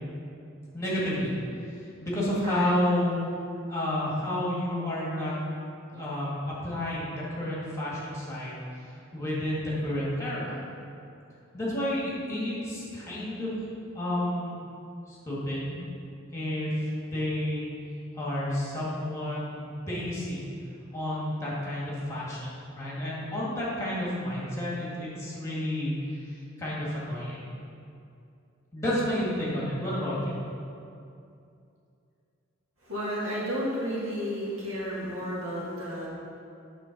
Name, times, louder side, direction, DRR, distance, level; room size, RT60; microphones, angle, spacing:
voice 1, 0.7-1.3 1.7-3.1 3.7-5.4 5.9-8.6 9.1-10.6 11.5-13.6 13.9-14.5 15.1-15.8 16.3-17.7 18.2-20.5 20.9-25.9 26.2-27.5 28.7-30.4, left 1 dB, 15° left, -7 dB, 2.0 m, -30 dB
voice 2, 32.8-36.1, equal, 80° right, -6 dB, 2.0 m, -32 dB
8.9 x 3.9 x 5.9 m, 2.6 s
head